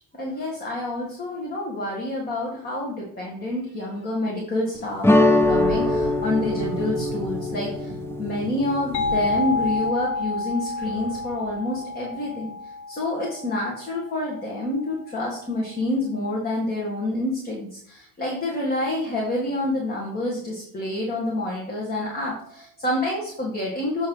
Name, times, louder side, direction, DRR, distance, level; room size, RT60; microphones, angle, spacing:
voice 1, 0.1-7.9 8.2-24.1, left 1 dB, 25° left, -2 dB, 1.8 m, -28 dB
sound 1, 5.0-9.9, left 2 dB, 5° left, 0.4 m, -23 dB
Animal, 5.4-12.5, right 7 dB, 45° right, 0.8 m, -38 dB
sound 2, 8.9-14.4, left 3 dB, 55° left, 0.7 m, -29 dB
7.7 x 3.3 x 5.5 m, 0.65 s
supercardioid pair, 105°, 37 cm